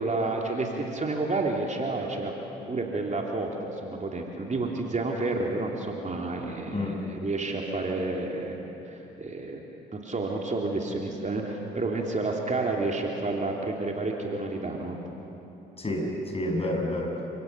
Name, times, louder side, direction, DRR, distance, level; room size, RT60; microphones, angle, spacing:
voice 1, 0.0-2.3 2.7-8.6 8.8-9.6 9.9-15.0, right 3 dB, 35° right, 0 dB, 3.2 m, -30 dB
voice 2, 15.8-17.2, left 1 dB, 30° left, 0 dB, 7.1 m, -29 dB
29.5 x 17.5 x 7.0 m, 3.0 s
hypercardioid pair, 55°, 21 cm